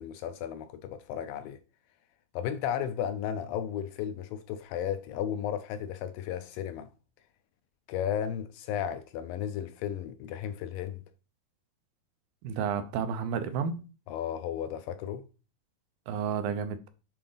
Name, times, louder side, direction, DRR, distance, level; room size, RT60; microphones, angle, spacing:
voice 1, 0.0-1.6 2.3-6.9 7.9-11.0 14.1-15.3, left 9 dB, 80° left, 2.1 m, -34 dB
voice 2, 12.4-13.9 16.1-16.9, right 7 dB, 80° right, 2.2 m, -31 dB
7.6 x 3.8 x 3.9 m
omnidirectional pair, 4.3 m